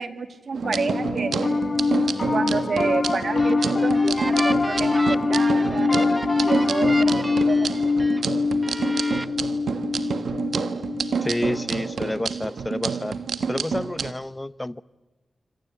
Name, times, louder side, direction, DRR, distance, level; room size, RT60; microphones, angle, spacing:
voice 1, 0.0-1.3 2.3-5.9 6.4-7.9, right 4 dB, 70° right, 9 dB, 2.3 m, -29 dB
sound 1, 0.5-14.1, right 6 dB, 85° right, 1.3 m, -29 dB
Piano, 0.6-12.1, left 3 dB, 50° left, 1.1 m, -24 dB
sound 2, 3.2-8.2 8.6-9.3, right 1 dB, 20° right, 1.0 m, -34 dB
voice 2, 11.2-13.1 13.5-14.8, left 1 dB, 15° left, 17 dB, 0.8 m, -29 dB
27.0 x 25.5 x 8.4 m, 1.1 s
cardioid pair, 70°, 0 cm